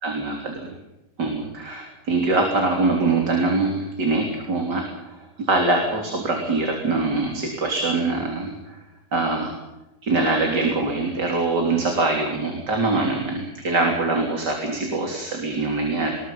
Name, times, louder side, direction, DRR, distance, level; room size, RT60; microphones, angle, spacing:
voice 1, 0.0-0.7 1.2-8.8 9.1-9.5 10.0-16.1, right 3 dB, 80° right, 1 dB, 4.2 m, -23 dB
26.0 x 21.0 x 5.8 m, 1.0 s
omnidirectional pair, 1.8 m